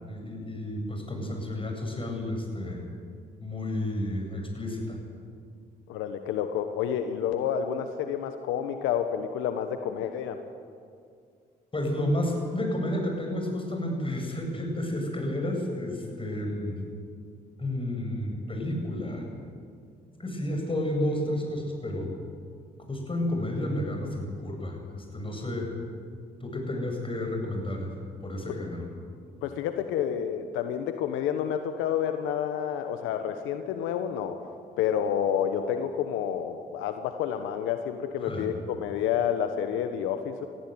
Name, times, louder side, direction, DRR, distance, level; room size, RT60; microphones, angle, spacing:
voice 1, 0.0-2.8 3.4-5.0 11.7-16.8 17.6-19.2 20.2-22.1 22.9-25.7 26.4-28.8 38.2-38.5, left 1 dB, 25° left, 2 dB, 7.6 m, -31 dB
voice 2, 5.9-10.4 29.4-34.5 34.8-40.5, left 9 dB, 85° left, 8 dB, 1.1 m, -29 dB
20.0 x 14.5 x 9.6 m, 2.2 s
hypercardioid pair, 50°, 20 cm